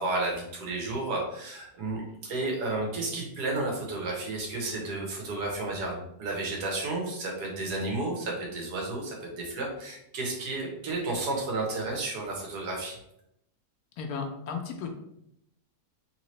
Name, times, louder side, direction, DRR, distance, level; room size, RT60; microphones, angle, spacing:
voice 1, 0.0-13.0, right 2 dB, 90° right, 0 dB, 1.5 m, -32 dB
voice 2, 14.0-14.9, left 5 dB, 80° left, 3 dB, 1.1 m, -34 dB
3.3 x 2.9 x 3.1 m, 0.79 s
omnidirectional pair, 1.7 m